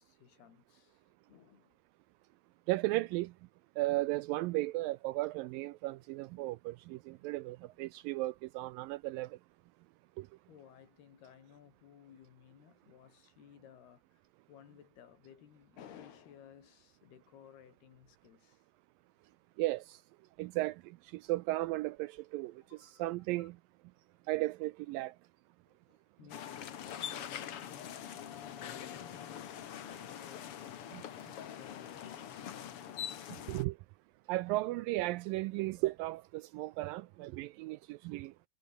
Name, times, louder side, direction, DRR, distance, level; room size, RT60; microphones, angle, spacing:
voice 1, 0.0-1.8 7.2-7.3 7.7-7.8 10.5-14.2 14.5-18.7 22.7-23.1 23.4-23.5 25.7-33.4, left 9 dB, 85° left, 4.6 m, -58 dB
voice 2, 2.7-3.4 3.8-9.4 10.2-10.3 19.6-20.0 20.4-23.6 24.3-25.2 30.9-31.0 33.5-33.8 34.3-38.3, right 19 dB, 85° right, 2.0 m, -35 dB
sound 1, 26.3-33.6, left 9 dB, 55° left, 1.6 m, -44 dB
omnidirectional pair, 4.5 m